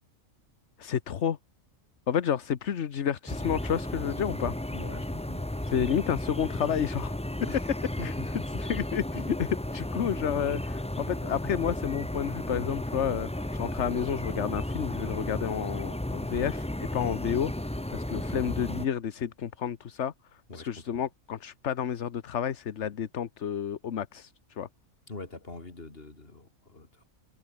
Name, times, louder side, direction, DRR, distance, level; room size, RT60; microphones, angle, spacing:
voice 1, 0.8-1.4 2.1-4.5 5.7-7.1 8.0-8.1 8.6-17.5 17.9-20.1 20.5-24.7, left 8 dB, 60° left, 1.3 m, -30 dB
sound 1, 3.3-18.9, left 1 dB, 5° left, 0.6 m, -34 dB
voice 2, 4.7-6.1 7.5-7.7 8.0-8.3 20.5-21.0 25.1-27.0, left 3 dB, 40° left, 3.3 m, -44 dB
omnidirectional pair, 1.5 m